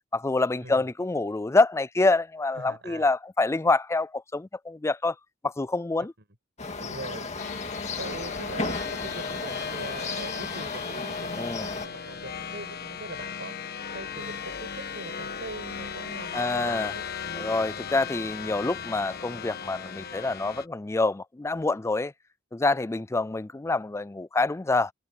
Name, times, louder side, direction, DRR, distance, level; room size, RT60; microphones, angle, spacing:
voice 1, 0.1-5.1 5.4-6.1 11.4-11.7 16.3-16.9 17.4-22.1 22.5-24.9, left 3 dB, 15° left, 0.4 m, -26 dB
voice 2, 2.6-3.1 6.8-7.3 8.0-17.0, right 2 dB, 60° right, 5.9 m, -42 dB
sound 1, 6.6-11.9, left 3 dB, 35° left, 2.0 m, -34 dB
sound 2, 7.4-20.7, left 6 dB, 50° left, 1.3 m, -37 dB
head